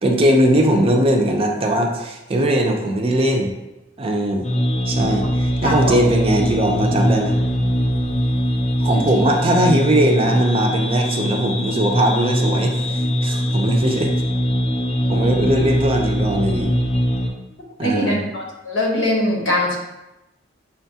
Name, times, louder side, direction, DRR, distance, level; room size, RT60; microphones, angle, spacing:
voice 1, 0.0-3.5 4.0-4.5 4.9-7.3 8.8-14.1 15.1-16.7 17.8-18.2, right 1 dB, 30° right, 2 dB, 0.4 m, -19 dB
sound 1, 4.4-17.3, equal, 35° left, 0.4 m, -21 dB
voice 2, 5.6-6.0 8.9-9.1 17.8-19.7, left 1 dB, 85° left, -2 dB, 1.0 m, -22 dB
5.7 x 2.3 x 2.7 m, 0.98 s
head